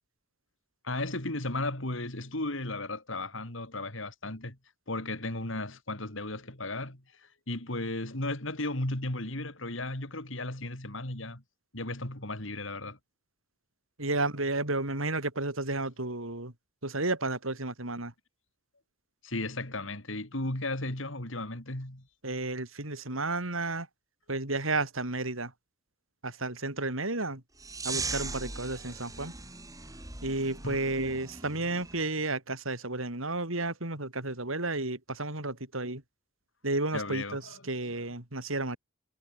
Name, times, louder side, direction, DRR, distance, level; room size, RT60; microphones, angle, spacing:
voice 1, 0.8-4.6 4.9-11.4 11.7-13.0 19.2-22.1 30.6-30.9 36.9-38.1, left 2 dB, 65° left, 4.1 m, -35 dB
voice 2, 14.0-16.5 16.8-18.1 22.2-23.9 24.3-25.5 26.2-27.4 27.8-29.3 30.2-36.0 36.6-37.4 37.7-38.8, right 2 dB, 80° right, 5.3 m, -32 dB
sound 1, 27.6-32.0, right 3 dB, 15° right, 7.2 m, -39 dB
head